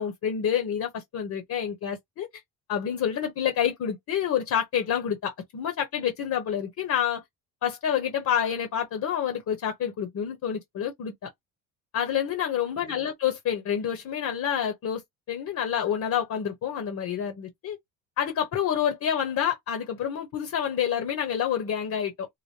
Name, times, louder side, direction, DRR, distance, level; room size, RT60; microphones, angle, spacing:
voice 1, 0.0-2.3 2.7-7.2 7.6-11.3 11.9-15.0 15.3-17.8 18.2-22.3, left 9 dB, 55° left, 1.1 m, -28 dB
5.0 x 2.2 x 2.8 m
cardioid pair, 135°, 34 cm